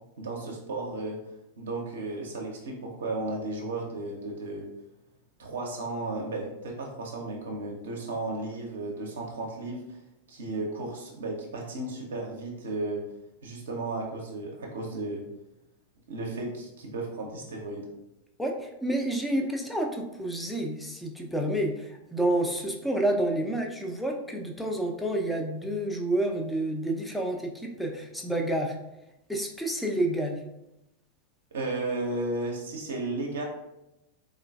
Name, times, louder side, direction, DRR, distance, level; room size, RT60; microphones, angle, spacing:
voice 1, 0.2-1.2 1.6-4.7 5.4-10.0 10.3-13.0 13.4-15.3 16.1-17.9 31.5-33.4, right 2 dB, 65° right, 0 dB, 0.5 m, -34 dB
voice 2, 18.4-28.8 29.3-30.4, right 1 dB, 5° left, 1 dB, 0.4 m, -29 dB
3.7 x 2.2 x 2.2 m, 0.91 s
figure-of-eight pair, 90°, 0 cm